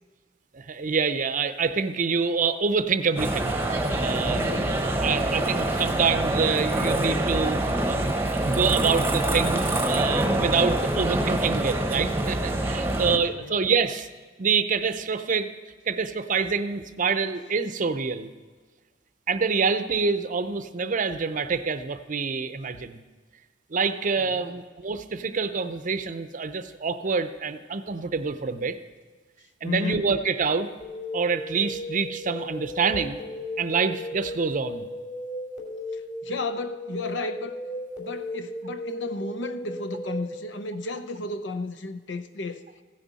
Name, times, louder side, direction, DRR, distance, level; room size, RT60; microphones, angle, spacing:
voice 1, 0.5-4.4 4.8-8.0 8.3-14.1 14.4-15.5 15.9-18.3 19.3-23.0 23.7-28.8 29.6-30.7 31.1-33.2 33.6-34.8, right 5 dB, 45° right, 0.6 m, -26 dB
sound 1, 3.2-13.2, right 1 dB, 15° right, 0.9 m, -25 dB
voice 2, 4.3-4.8 12.9-13.6 24.2-24.5 29.6-30.1 35.9-37.5 38.0-42.6, left 2 dB, 75° left, 0.8 m, -34 dB
sound 2, 30.8-40.4, left 1 dB, 45° left, 3.3 m, -35 dB
15.5 x 9.9 x 4.1 m
head